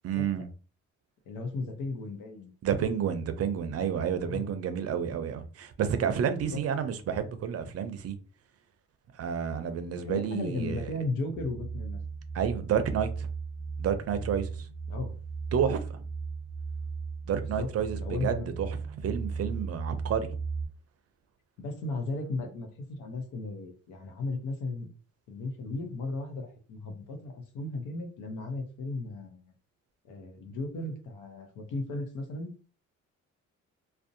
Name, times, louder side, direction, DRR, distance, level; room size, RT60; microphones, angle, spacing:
voice 1, 0.0-0.5 2.6-8.2 9.1-10.8 12.3-13.3 13.8-14.7 15.5-16.0 17.3-18.7 19.0-20.3, right 8 dB, 55° right, 0.5 m, -30 dB
voice 2, 1.3-2.5 4.2-4.5 6.5-6.9 9.9-12.0 14.9-15.1 17.6-18.5 21.6-24.9 25.3-29.5 30.0-32.5, left 2 dB, 85° left, 0.8 m, -36 dB
sound 1, 11.3-20.7, right 5 dB, 5° left, 0.4 m, -36 dB
2.5 x 2.1 x 2.6 m
cardioid pair, 90°, 30 cm